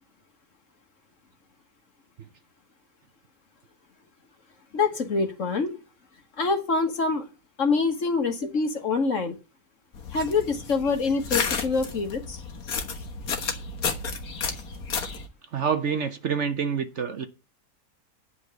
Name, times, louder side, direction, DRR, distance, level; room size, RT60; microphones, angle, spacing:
voice 1, 4.7-5.8 6.4-7.3 7.6-9.3 10.1-12.4, left 4 dB, 55° left, 1.8 m, -25 dB
sound 1, 9.9-15.3, left 5 dB, 70° left, 1.8 m, -32 dB
voice 2, 15.5-17.3, right 6 dB, 55° right, 1.1 m, -27 dB
9.8 x 5.5 x 8.0 m
omnidirectional pair, 1.6 m